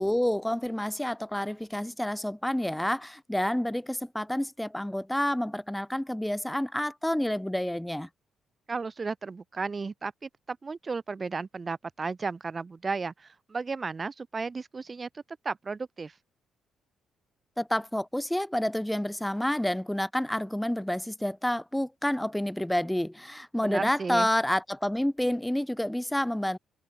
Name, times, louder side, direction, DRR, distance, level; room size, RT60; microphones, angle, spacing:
voice 1, 0.0-8.1 17.6-26.6, left 1 dB, 5° left, 0.3 m, -29 dB
voice 2, 8.7-16.1 23.6-24.3, right 4 dB, 30° right, 0.8 m, -34 dB
cardioid pair, 90°, 0 cm